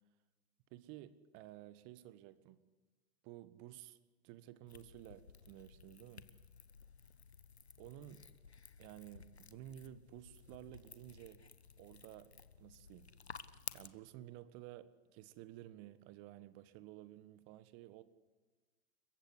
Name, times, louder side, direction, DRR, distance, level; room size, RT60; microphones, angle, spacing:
voice 1, 0.7-2.6 3.2-4.0 4.2-6.3 7.8-8.3 8.8-11.4 11.8-13.2 13.7-18.0, right 14 dB, 40° right, 1.5 m, -53 dB
Egg pulp, 4.7-13.9, left 5 dB, 85° left, 1.2 m, -55 dB
30.0 x 15.0 x 9.9 m
figure-of-eight pair, 95°, 31 cm